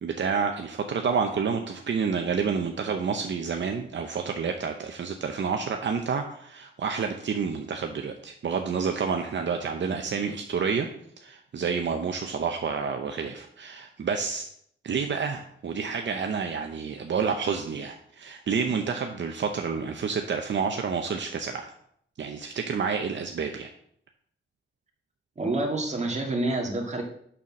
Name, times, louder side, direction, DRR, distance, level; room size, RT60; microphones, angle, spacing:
voice 1, 0.0-10.9 11.2-14.4 14.8-21.6 22.2-23.7, right 6 dB, 65° right, 4 dB, 0.7 m, -29 dB
voice 2, 25.4-27.0, right 2 dB, 35° right, 1 dB, 1.7 m, -28 dB
6.8 x 5.7 x 6.3 m, 0.67 s
wide cardioid pair, 150°, 20 cm